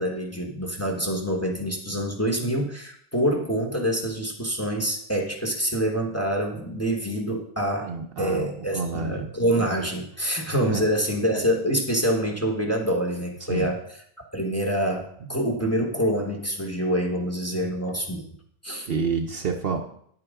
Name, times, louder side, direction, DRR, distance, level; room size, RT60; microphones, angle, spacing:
voice 1, 0.0-7.9 8.2-13.8 14.3-18.2 18.6-18.9, equal, 15° left, 1 dB, 1.2 m, -26 dB
voice 2, 7.8-8.5 8.7-9.3 10.6-10.8 13.5-13.7 17.5-17.7 18.9-19.8, right 5 dB, 55° right, 4 dB, 0.9 m, -29 dB
9.7 x 8.9 x 3.6 m, 0.66 s
omnidirectional pair, 1.2 m